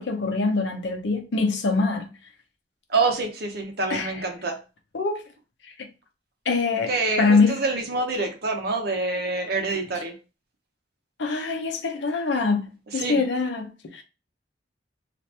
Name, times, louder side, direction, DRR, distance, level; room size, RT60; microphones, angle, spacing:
voice 1, 0.0-2.1 3.9-4.2 4.9-5.3 5.8-5.9 6.5-6.9 7.2-7.6 11.2-12.7 12.9-14.0, left 4 dB, 85° left, 0.6 m, -24 dB
voice 2, 2.9-4.6 6.9-10.1 12.9-13.2, right 3 dB, 60° right, 0.7 m, -26 dB
2.8 x 2.5 x 3.2 m
head